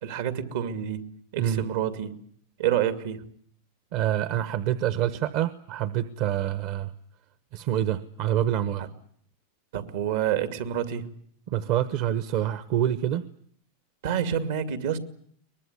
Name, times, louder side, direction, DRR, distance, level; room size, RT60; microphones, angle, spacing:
voice 1, 0.0-2.1 2.6-3.2 8.8-8.9 9.7-11.1 14.0-15.0, right 9 dB, 75° right, 10 dB, 2.5 m, -28 dB
voice 2, 3.9-6.9 7.5-8.9 11.5-13.2, right 11 dB, 55° right, 13 dB, 1.1 m, -26 dB
23.0 x 20.0 x 9.7 m, 0.63 s
supercardioid pair, 130°, 0 cm